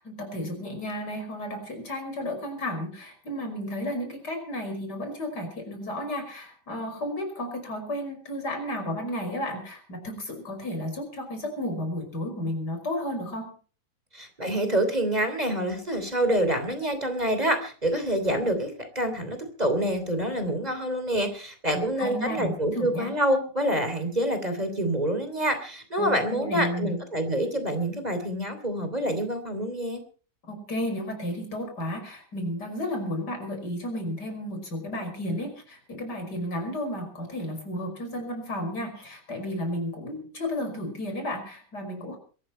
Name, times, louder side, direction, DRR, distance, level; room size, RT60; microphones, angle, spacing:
voice 1, 0.0-13.5 21.7-23.1 26.0-26.9 30.5-42.2, equal, 80° left, 5 dB, 6.0 m, -33 dB
voice 2, 14.1-30.0, right 1 dB, 25° right, 7 dB, 3.3 m, -27 dB
22.5 x 14.0 x 4.4 m, 0.39 s
omnidirectional pair, 1.8 m